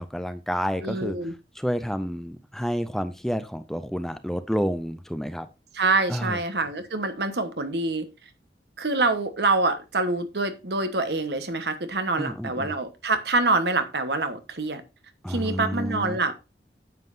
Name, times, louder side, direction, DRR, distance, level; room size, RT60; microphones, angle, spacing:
voice 1, 0.0-1.2 1.6-5.5 6.1-6.4 12.2-12.7 15.2-16.3, equal, ahead, 11 dB, 0.4 m, -29 dB
voice 2, 0.8-1.3 5.7-8.1 8.8-14.8 15.3-16.3, right 3 dB, 75° right, 9 dB, 1.2 m, -26 dB
9.2 x 7.3 x 2.6 m, 0.27 s
head